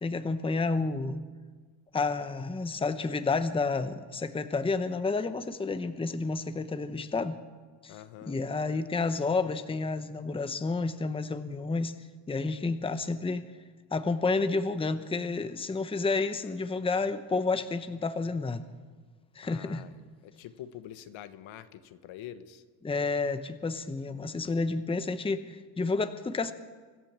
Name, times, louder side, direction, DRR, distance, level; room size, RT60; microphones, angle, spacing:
voice 1, 0.0-1.2 1.9-7.4 7.8-8.0 8.2-11.9 12.3-13.5 13.9-18.7 19.3-19.8 22.8-26.5, left 3 dB, 10° left, 10 dB, 0.8 m, -30 dB
voice 2, 7.9-8.4 19.4-19.9 20.2-22.6, left 11 dB, 75° left, 11 dB, 1.4 m, -45 dB
25.0 x 14.0 x 7.4 m, 1.4 s
cardioid pair, 130°, 47 cm